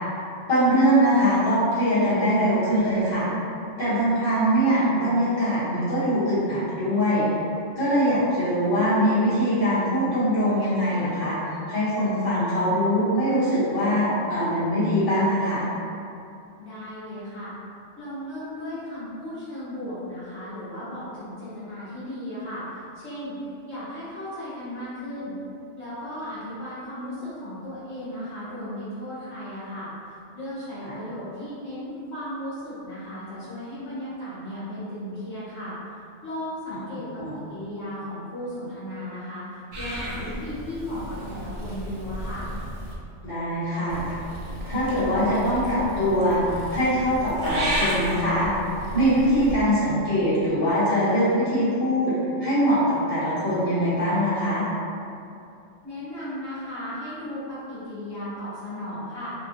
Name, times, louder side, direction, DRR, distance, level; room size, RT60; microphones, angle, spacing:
voice 1, 0.5-3.3 3.8-7.3 7.8-15.6 30.9-31.0 37.2-37.3 43.2-44.1 44.6-48.5 48.9-54.6, equal, 30° left, -13 dB, 1.1 m, -22 dB
voice 2, 16.6-17.5 18.0-25.3 25.8-42.5 55.8-59.3, left 1 dB, 65° left, -12 dB, 1.1 m, -35 dB
Purr / Meow, 39.7-42.9 43.9-49.5, equal, 50° right, 0.4 m, -33 dB
2.8 x 2.3 x 2.8 m, 2.6 s
omnidirectional pair, 1.2 m